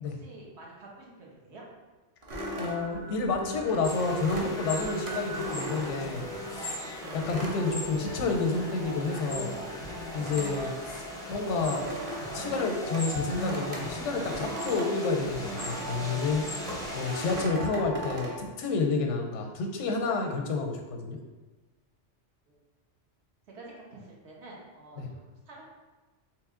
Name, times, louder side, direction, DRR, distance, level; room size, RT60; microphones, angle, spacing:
voice 1, 0.0-1.6 22.5-22.6 23.5-25.6, right 2 dB, 65° right, -3 dB, 1.2 m, -49 dB
sound 1, 2.2-6.5 7.0-8.5 8.8-16.2 16.7-18.4, right 1 dB, 40° right, 0.6 m, -40 dB
sound 2, 2.3-18.3, right 1 dB, 90° right, 1.4 m, -40 dB
voice 2, 2.6-6.8 7.1-9.5 10.1-11.8 12.3-16.5 16.9-21.2 25.0-25.1, left 4 dB, 85° left, 3 dB, 0.9 m, -30 dB
sound 3, 3.8-17.5, left 1 dB, 5° left, 0.4 m, -39 dB
3.3 x 3.1 x 3.6 m, 1.2 s
omnidirectional pair, 1.2 m